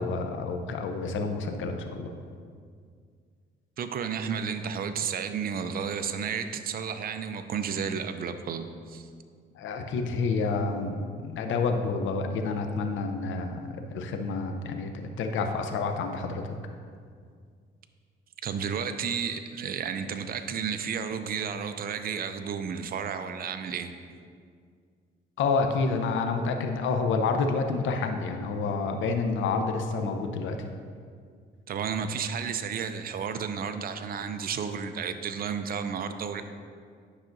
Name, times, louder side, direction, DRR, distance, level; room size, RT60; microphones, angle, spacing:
voice 1, 0.0-2.1 9.5-14.9 15.2-16.6 25.4-30.7, left 4 dB, 80° left, 5 dB, 0.7 m, -29 dB
voice 2, 3.8-9.1 18.4-23.9 31.7-36.4, right 7 dB, 50° right, 9 dB, 0.5 m, -32 dB
10.0 x 5.7 x 2.6 m, 2.1 s
cardioid pair, 90°, 20 cm